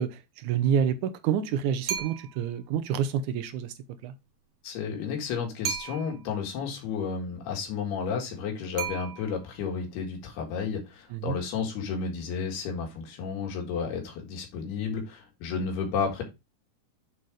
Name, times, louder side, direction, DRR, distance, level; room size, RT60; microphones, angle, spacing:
voice 1, 0.0-3.7 4.0-4.1 11.1-11.4, right 8 dB, 85° right, 1.7 m, -28 dB
sound 1, 1.9-2.5 5.6-6.3 8.8-9.6, right 8 dB, 65° right, 2.4 m, -35 dB
voice 2, 4.6-16.2, left 6 dB, 90° left, 4.1 m, -32 dB
8.6 x 4.2 x 4.8 m
omnidirectional pair, 4.5 m